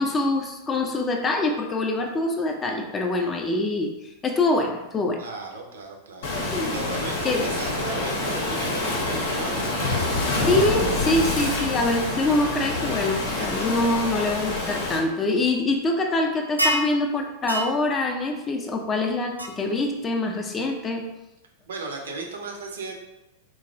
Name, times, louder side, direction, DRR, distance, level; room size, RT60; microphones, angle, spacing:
voice 1, 0.0-3.9 4.2-5.2 6.5-6.8 7.2-7.5 10.5-21.1, left 2 dB, 20° left, 3 dB, 0.5 m, -24 dB
voice 2, 5.2-10.2 14.0-14.1 21.7-22.9, right 3 dB, 65° right, 2 dB, 0.6 m, -36 dB
Waves surf, 6.2-15.0, left 2 dB, 55° left, 0.7 m, -27 dB
sound 1, 16.6-16.9 17.5-17.7 19.4-19.5, right 1 dB, 90° left, 0.3 m, -24 dB
3.8 x 2.9 x 2.5 m, 0.95 s
figure-of-eight pair, 90°, 0 cm